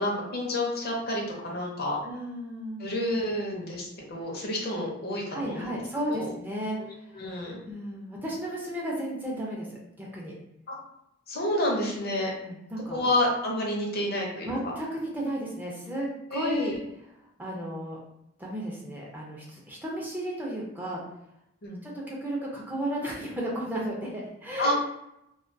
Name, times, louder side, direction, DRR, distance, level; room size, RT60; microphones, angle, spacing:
voice 1, 0.0-2.0 2.8-5.7 6.1-6.3 6.8-6.9 7.1-7.6 10.7-10.8 11.3-12.3 12.9-14.7 16.3-16.8 21.6-21.8 24.6-24.7, left 1 dB, 55° left, -1 dB, 0.6 m, -29 dB
voice 2, 2.0-2.9 5.3-6.8 7.6-9.7 10.0-10.3 12.4-13.0 14.4-16.7 17.4-18.0 18.4-21.0 21.8-24.7, right 1 dB, 10° right, -3 dB, 0.4 m, -33 dB
2.2 x 2.2 x 2.5 m, 0.81 s
head